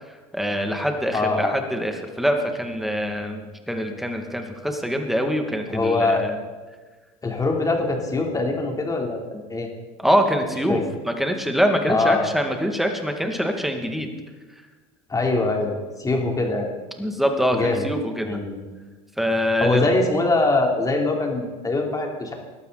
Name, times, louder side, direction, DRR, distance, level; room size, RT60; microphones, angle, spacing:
voice 1, 0.3-6.4 10.0-10.8 11.1-14.1 17.0-18.4 19.2-19.9, equal, ahead, 4 dB, 2.3 m, -24 dB
voice 2, 1.1-1.6 5.7-6.2 7.2-9.7 10.7-10.8 11.9-12.3 15.1-16.7 17.5-17.9 18.2-18.6 19.6-22.3, left 2 dB, 20° left, 1 dB, 3.6 m, -23 dB
20.5 x 12.5 x 4.2 m, 1.3 s
hypercardioid pair, 90°, 17 cm